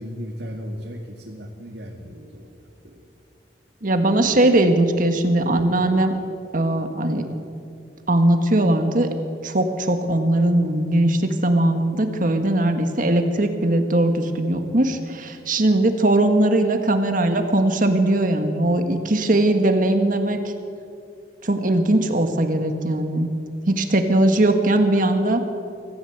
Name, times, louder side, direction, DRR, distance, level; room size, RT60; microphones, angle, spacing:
voice 1, 0.0-2.5 2.8-3.0 4.2-4.6, equal, 80° right, -1 dB, 2.4 m, -36 dB
voice 2, 3.8-6.2 6.5-7.3 8.1-9.1 9.4-20.5 21.4-23.3 23.7-25.4, right 1 dB, 50° right, 6 dB, 1.7 m, -20 dB
25.0 x 14.5 x 8.1 m, 2.5 s
head